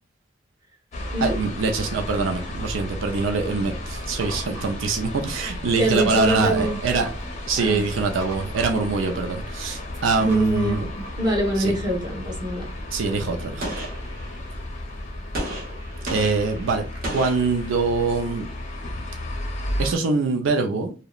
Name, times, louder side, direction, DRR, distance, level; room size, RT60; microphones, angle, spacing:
sound 1, 0.9-20.0, left 1 dB, 40° left, 0.5 m, -33 dB
voice 1, 1.2-7.1 7.4-10.9 11.6-11.7 12.9-13.7 16.1-16.8 17.1-18.5 19.8-20.9, right 4 dB, 90° right, 4 dB, 0.4 m, -24 dB
sound 2, 4.2-5.3 5.9-7.3 7.7-9.2 9.9-11.2, right 2 dB, 70° right, 1.2 m, -41 dB
voice 2, 5.8-6.8 7.5-7.8 10.2-12.7, right 1 dB, 25° right, -3 dB, 1.0 m, -25 dB
Gunshot gunfire, 13.6-14.7 15.3-18.1, right 1 dB, 50° right, 0.8 m, -34 dB
2.8 x 2.0 x 2.3 m, 0.33 s
head